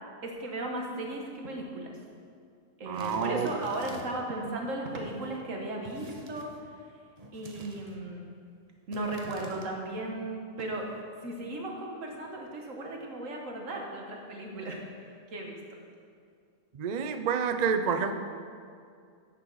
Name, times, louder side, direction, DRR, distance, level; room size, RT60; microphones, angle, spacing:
voice 1, 0.2-2.1 2.8-6.5 7.3-8.3 8.9-10.9 11.2-15.6, right 2 dB, 65° right, 1 dB, 1.7 m, -36 dB
sound 1, 2.9-4.3 5.8-6.6 7.2-8.0 8.9-9.7, right 2 dB, 30° right, 0.9 m, -49 dB
voice 2, 2.9-3.5 16.7-18.1, right 6 dB, 85° right, 8 dB, 0.3 m, -28 dB
10.5 x 8.6 x 4.0 m, 2.3 s
omnidirectional pair, 1.5 m